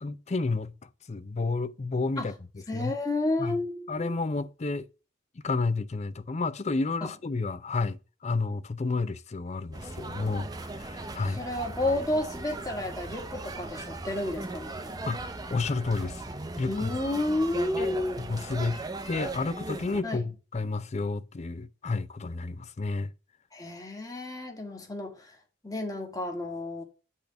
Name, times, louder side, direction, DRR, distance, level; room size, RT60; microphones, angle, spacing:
voice 1, 0.0-2.3 2.7-2.9 3.4-3.6 3.9-4.9 5.4-11.4 15.1-15.2 15.5-16.2 16.6-16.9 17.8-18.0 18.3-18.8 19.1-23.1, left 3 dB, 35° left, 0.5 m, -31 dB
voice 2, 2.7-4.2 7.0-7.1 11.3-15.0 16.7-18.2 20.0-20.3 23.5-25.4 25.6-26.8, left 2 dB, 20° left, 1.5 m, -31 dB
sound 1, 9.7-20.0, right 2 dB, 20° right, 0.7 m, -38 dB
8.3 x 3.4 x 6.6 m
head